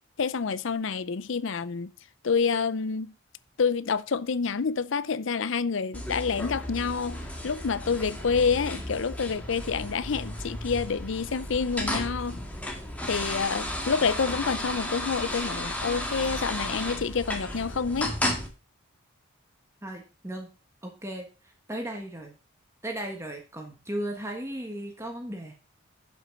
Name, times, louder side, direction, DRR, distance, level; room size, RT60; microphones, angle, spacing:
voice 1, 0.0-1.9 2.2-3.1 3.6-12.4 13.1-18.1, left 5 dB, 65° left, 0.5 m, -28 dB
sound 1, 5.9-18.5, left 1 dB, 5° left, 2.0 m, -34 dB
voice 2, 19.8-20.5 20.8-21.3 21.7-22.3 22.8-25.5, right 1 dB, 15° right, 1.4 m, -36 dB
11.0 x 6.0 x 5.2 m
head